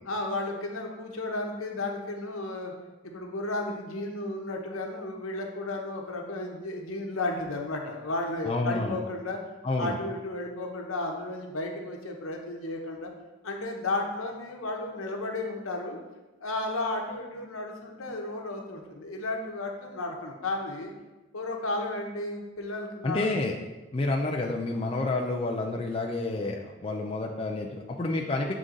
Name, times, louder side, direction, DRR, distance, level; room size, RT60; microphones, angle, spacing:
voice 1, 0.0-2.7 3.0-9.4 9.8-13.1 13.4-16.0 16.4-20.9 21.3-23.3, left 2 dB, 85° left, 2 dB, 1.0 m, -33 dB
voice 2, 8.4-9.0 9.6-9.9 23.0-23.5 23.9-28.5, left 2 dB, 25° left, 0 dB, 0.4 m, -29 dB
7.8 x 3.7 x 3.8 m, 1.1 s
head